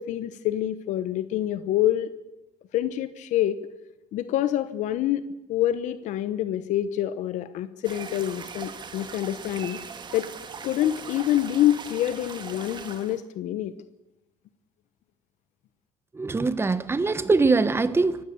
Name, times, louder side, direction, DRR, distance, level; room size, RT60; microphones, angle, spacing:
voice 1, 0.0-2.1 2.7-3.6 4.1-9.8 10.1-10.3 10.6-13.7, left 12 dB, 70° left, 1.0 m, -26 dB
sound 1, 7.8-13.2, right 6 dB, 35° right, 1.9 m, -40 dB
voice 2, 16.2-18.2, right 3 dB, 20° right, 1.2 m, -22 dB
26.0 x 15.5 x 7.0 m
cardioid pair, 105°, 13 cm